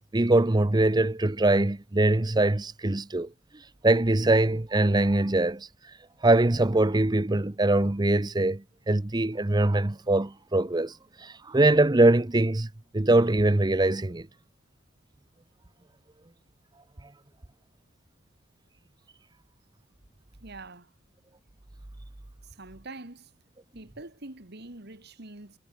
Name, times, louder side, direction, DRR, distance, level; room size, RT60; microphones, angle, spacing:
voice 1, 0.1-3.3 3.8-5.7 6.2-10.9 11.2-12.7 12.9-14.3, right 2 dB, 20° right, 0.6 m, -22 dB
voice 2, 20.4-20.9 22.4-23.3 23.7-25.6, right 2 dB, 50° right, 2.0 m, -44 dB
head